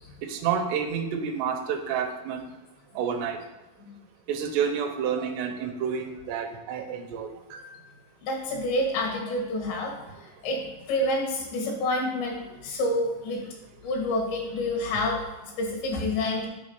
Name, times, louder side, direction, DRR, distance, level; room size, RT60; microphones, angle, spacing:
voice 1, 0.2-2.5 3.0-3.4 4.3-7.7 9.7-9.8, right 7 dB, 85° right, 5 dB, 2.8 m, -29 dB
voice 2, 8.2-10.0 10.2-13.5 13.8-16.5, left 1 dB, 85° left, 0 dB, 3.9 m, -28 dB
7.9 x 4.2 x 6.8 m, 1.1 s
omnidirectional pair, 4.9 m